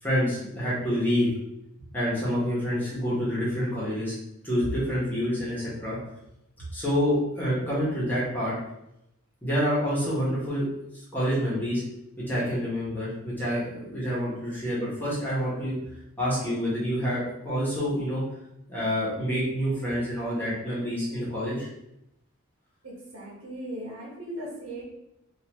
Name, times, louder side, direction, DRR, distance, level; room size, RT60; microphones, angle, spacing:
voice 1, 0.0-1.3 1.9-4.1 4.4-6.0 6.7-8.5 9.4-10.7 11.1-11.8 12.3-15.7 16.2-18.2 18.7-21.7, equal, 10° left, -8 dB, 1.3 m, -27 dB
voice 2, 22.8-24.8, right 1 dB, 75° right, -4 dB, 1.3 m, -38 dB
3.9 x 2.7 x 3.0 m, 0.84 s
head